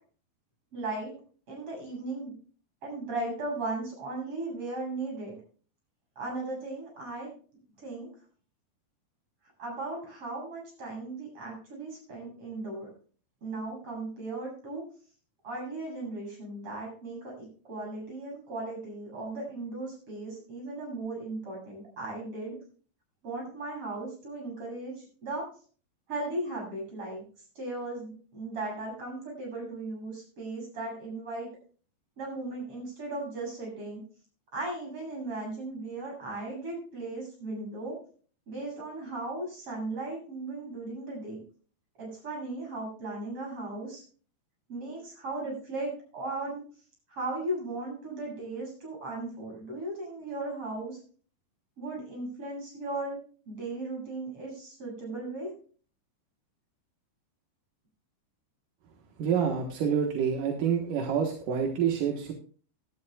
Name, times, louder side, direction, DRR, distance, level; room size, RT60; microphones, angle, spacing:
voice 1, 0.7-1.2 1.5-2.3 2.8-5.3 6.2-7.3 7.8-8.1 9.6-12.9 13.4-14.8 15.4-22.6 23.2-25.5 26.1-27.2 27.5-31.5 32.2-34.0 34.5-38.0 38.5-41.4 42.0-44.0 44.7-46.6 47.1-51.0 51.8-53.2 53.5-55.5, right 2 dB, 30° right, -2 dB, 8.4 m, -37 dB
voice 2, 59.2-62.3, right 7 dB, 60° right, 2 dB, 2.5 m, -27 dB
18.0 x 11.5 x 2.3 m, 0.41 s
omnidirectional pair, 5.0 m